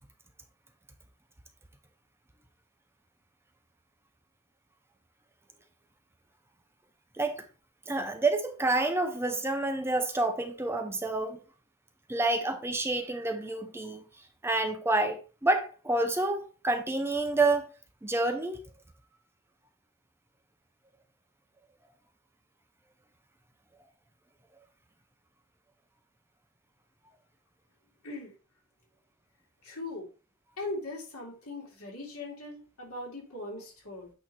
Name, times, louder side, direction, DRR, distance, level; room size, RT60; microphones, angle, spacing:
voice 1, 7.9-11.4 12.1-14.0 14.4-17.7 18.0-18.6, right 2 dB, 10° right, 0.6 m, -28 dB
voice 2, 29.6-30.1 30.6-34.1, left 2 dB, 75° left, 2.7 m, -40 dB
8.4 x 3.0 x 4.2 m
head